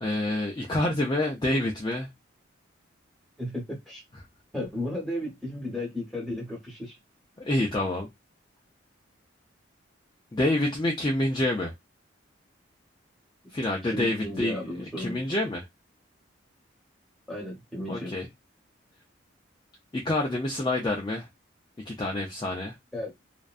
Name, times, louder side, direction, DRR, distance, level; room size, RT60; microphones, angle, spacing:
voice 1, 0.0-2.1 7.4-8.1 10.3-11.7 13.5-14.6 15.0-15.7 17.9-18.3 19.9-21.3 21.9-22.8, left 1 dB, 20° left, 0.4 m, -27 dB
voice 2, 3.4-4.0 4.5-7.0 13.9-15.2 17.3-18.1 22.9-23.1, left 1 dB, ahead, 1.0 m, -34 dB
2.5 x 2.2 x 2.3 m
head